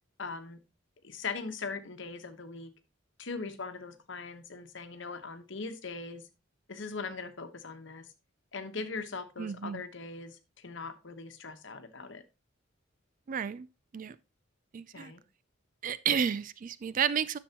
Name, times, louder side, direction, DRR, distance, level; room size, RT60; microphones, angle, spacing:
voice 1, 0.2-0.6 1.0-2.7 3.2-6.3 6.7-8.1 8.5-12.2 14.9-15.2, left 4 dB, 65° left, 1.1 m, -40 dB
voice 2, 9.4-9.8 13.3-13.7 13.9-14.2 14.7-15.1 15.8-17.4, right 7 dB, 40° right, 0.3 m, -31 dB
10.0 x 6.9 x 2.9 m
head